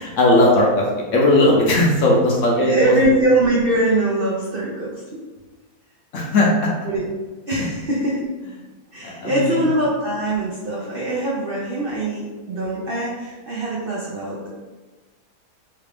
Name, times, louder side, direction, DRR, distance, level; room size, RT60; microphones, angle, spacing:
voice 1, 0.2-0.8 1.1-3.0 6.1-6.7 9.0-9.6, left 1 dB, 65° left, -3 dB, 0.8 m, -17 dB
voice 2, 2.6-5.2 6.8-7.1 7.5-8.3 8.9-14.5, right 1 dB, 75° right, -5 dB, 0.5 m, -22 dB
3.3 x 2.4 x 3.3 m, 1.2 s
omnidirectional pair, 1.7 m